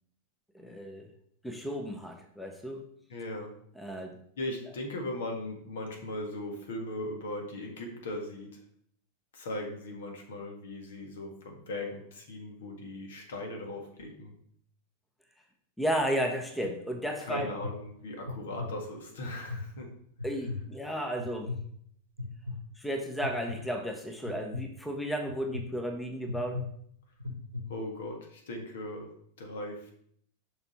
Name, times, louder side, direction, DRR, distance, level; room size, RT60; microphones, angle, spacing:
voice 1, 0.5-1.1 1.4-2.8 3.8-4.2 15.8-17.5 20.2-21.5 22.8-26.6, equal, 5° left, 4 dB, 0.9 m, -33 dB
voice 2, 3.1-3.6 4.4-8.6 9.3-14.3 17.2-19.9 27.7-29.1 29.4-29.9, left 1 dB, 60° left, 2 dB, 1.7 m, -38 dB
sound 1, 16.3-16.7 17.3-17.7 18.2-18.7 19.2-19.6 20.2-20.6 21.2-21.6 22.2-22.6 23.2-23.6 24.3-24.6 25.3-25.6 26.3-26.6 27.2-27.6, left 3 dB, 85° right, 1.0 m, -36 dB
7.1 x 5.6 x 4.2 m, 0.67 s
figure-of-eight pair, 90°, 0 cm